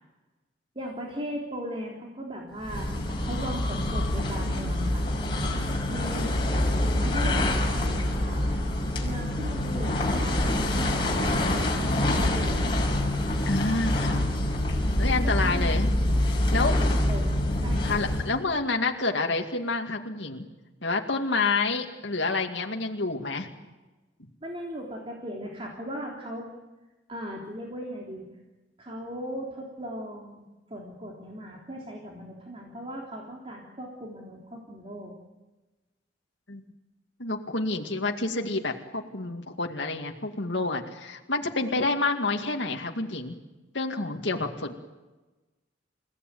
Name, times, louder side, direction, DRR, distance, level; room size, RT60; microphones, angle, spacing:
voice 1, 0.8-2.9 3.2-5.1 5.8-6.4 6.9-8.6 9.0-13.0 15.2-15.9 16.6-17.4 17.6-18.1 24.4-26.5 27.1-28.3 28.8-30.4 30.7-35.1, equal, 30° right, -1 dB, 3.6 m, -38 dB
sound 1, 2.6-18.4, left 1 dB, 25° left, 5.7 m, -26 dB
voice 2, 13.4-14.3 15.0-15.9 16.5-16.8 17.8-20.4 20.8-23.5 36.5-36.6 37.2-43.3 43.7-44.7, left 3 dB, 75° left, 2 dB, 2.2 m, -28 dB
29.5 x 17.0 x 9.3 m, 1.1 s
head